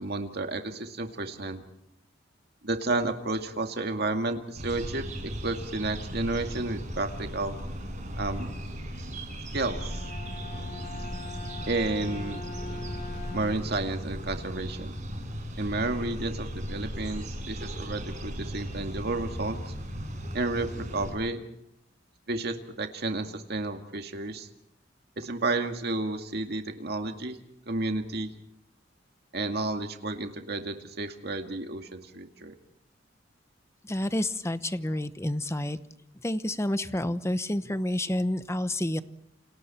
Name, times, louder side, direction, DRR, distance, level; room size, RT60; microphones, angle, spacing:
voice 1, 0.0-1.6 2.6-5.0 5.4-7.6 8.2-8.5 9.5-10.0 11.7-12.5 13.3-14.9 15.6-19.6 20.3-21.4 22.3-24.5 25.2-27.4 27.7-28.3 29.3-32.5, right 2 dB, 60° right, 5 dB, 2.2 m, -31 dB
sound 1, 4.5-21.1, equal, 40° right, 6.3 m, -37 dB
Bowed string instrument, 9.5-13.8, left 3 dB, 45° left, 2.7 m, -42 dB
voice 2, 33.9-35.8 36.2-39.0, left 1 dB, 15° left, 12 dB, 0.9 m, -29 dB
29.0 x 27.5 x 4.4 m, 0.75 s
head